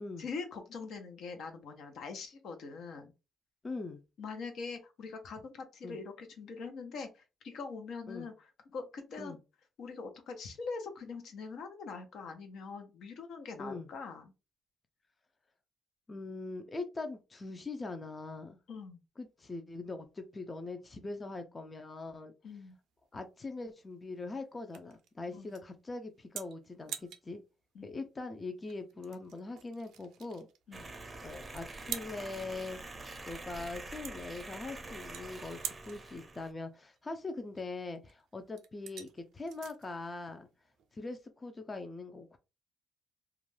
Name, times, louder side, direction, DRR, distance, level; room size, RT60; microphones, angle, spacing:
voice 1, 0.2-3.1 4.2-9.4 9.8-14.3 18.7-19.0 22.4-22.8 25.3-25.5 27.7-28.0 30.7-30.9, left 4 dB, 75° left, 0.7 m, -43 dB
voice 2, 3.6-4.0 5.8-6.0 8.1-8.3 9.2-9.4 13.6-13.9 16.1-18.6 19.2-22.3 23.1-27.4 27.8-30.5 31.2-40.5 40.9-42.4, left 3 dB, 30° left, 0.4 m, -42 dB
sound 1, 22.5-41.3, right 9 dB, 85° right, 0.4 m, -49 dB
sound 2, 30.7-36.5, right 2 dB, 25° right, 0.5 m, -46 dB
2.4 x 2.2 x 3.1 m
cardioid pair, 90°, 0 cm